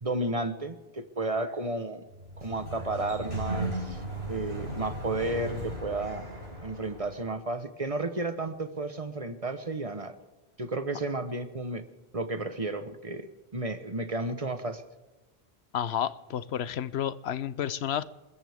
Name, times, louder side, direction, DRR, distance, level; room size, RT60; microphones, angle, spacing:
voice 1, 0.0-2.0 2.4-4.0 4.3-6.3 6.6-10.1 10.6-11.8 12.1-14.8, right 2 dB, 35° right, 10 dB, 1.1 m, -32 dB
Sliding door, 2.1-7.3, right 1 dB, 80° right, 7.6 m, -36 dB
voice 2, 15.7-18.0, left 9 dB, 85° left, 16 dB, 0.9 m, -31 dB
28.0 x 14.0 x 3.6 m, 1.2 s
omnidirectional pair, 1.0 m